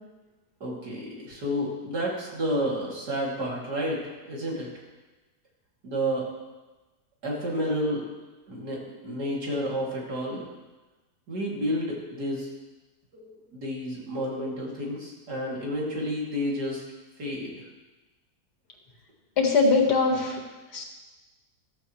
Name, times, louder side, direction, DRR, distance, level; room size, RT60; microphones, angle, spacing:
voice 1, 0.6-4.7 5.8-6.3 7.2-8.1 8.5-10.4 11.3-12.5 13.1-16.8 17.2-17.5, equal, 80° right, -4 dB, 3.3 m, -30 dB
voice 2, 19.4-20.4 20.7-20.8, left 4 dB, 90° left, 1 dB, 2.3 m, -21 dB
14.0 x 13.5 x 3.2 m, 1.2 s
omnidirectional pair, 1.7 m